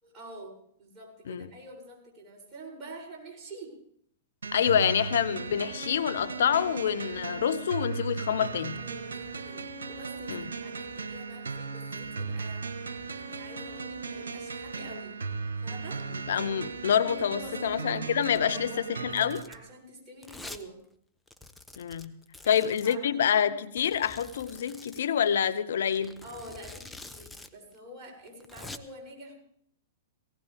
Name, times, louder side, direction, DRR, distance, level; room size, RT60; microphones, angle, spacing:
voice 1, 0.0-3.7 8.8-15.2 15.6-16.1 17.4-17.7 18.5-19.0 19.5-20.8 22.4-23.1 26.2-29.4, right 1 dB, 30° right, 7.3 m, -47 dB
sound 1, 4.4-19.4, right 4 dB, 80° right, 1.4 m, -37 dB
voice 2, 4.5-8.8 10.3-10.5 16.3-18.7 19.0-19.4 21.8-22.2 22.5-26.2, left 8 dB, 70° left, 0.8 m, -27 dB
Domestic sounds home sounds, 18.2-18.5 19.0-19.6 20.2-20.6 20.9-21.0 21.3-23.0 23.8-25.0 25.9-27.5 27.7-27.8 28.3-28.8, left 2 dB, 5° left, 1.0 m, -46 dB
18.5 x 18.0 x 3.5 m
hypercardioid pair, 110°, 0 cm